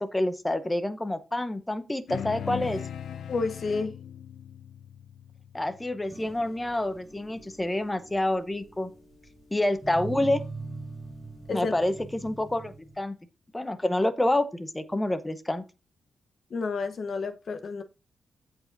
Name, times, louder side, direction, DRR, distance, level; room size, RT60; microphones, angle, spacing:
voice 1, 0.0-2.8 5.5-8.9 9.5-10.4 11.5-13.2 13.5-15.6, left 1 dB, 10° left, 0.7 m, -28 dB
sound 1, 2.1-6.8, left 8 dB, 80° left, 0.4 m, -39 dB
voice 2, 3.3-3.9 11.5-11.7 16.5-17.8, left 4 dB, 45° left, 0.9 m, -30 dB
sound 2, 6.1-13.0, right 2 dB, 5° right, 4.1 m, -42 dB
15.0 x 5.0 x 2.6 m
wide cardioid pair, 165°, 0 cm